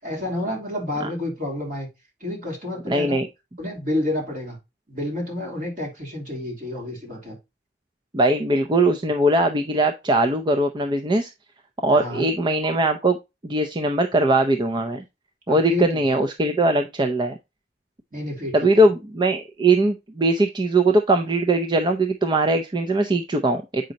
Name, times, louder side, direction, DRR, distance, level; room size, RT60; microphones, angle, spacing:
voice 1, 0.0-1.9 2.2-3.2 3.6-4.6 4.9-7.4 11.9-12.3 15.5-16.0 18.1-18.8, left 1 dB, 50° right, -1 dB, 3.2 m, -29 dB
voice 2, 2.9-3.3 8.1-11.3 11.8-13.2 13.4-15.0 15.5-17.4 18.5-23.9, right 2 dB, 25° right, 5 dB, 0.5 m, -20 dB
7.6 x 5.2 x 2.8 m, 0.24 s
head